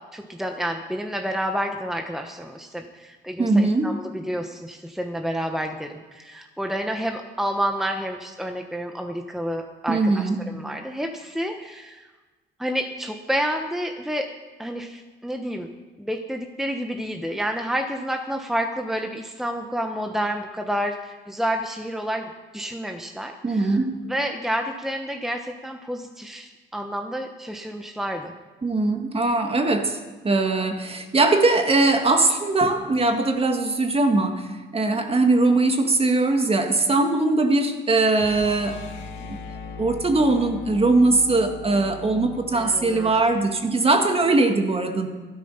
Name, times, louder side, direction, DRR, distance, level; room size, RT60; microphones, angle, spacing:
voice 1, 0.1-12.1 12.6-14.3 14.6-15.7 16.0-23.8 24.1-28.3 42.5-43.3, equal, ahead, 4 dB, 1.1 m, -29 dB
voice 2, 3.4-4.0 9.9-10.4 23.4-24.0 28.6-38.8 39.3-39.4 39.8-45.1, right 2 dB, 30° right, 5 dB, 1.8 m, -21 dB
sound 1, 38.1-44.2, left 4 dB, 80° left, 1.8 m, -39 dB
13.0 x 12.5 x 5.7 m, 1.3 s
cardioid pair, 90°, 20 cm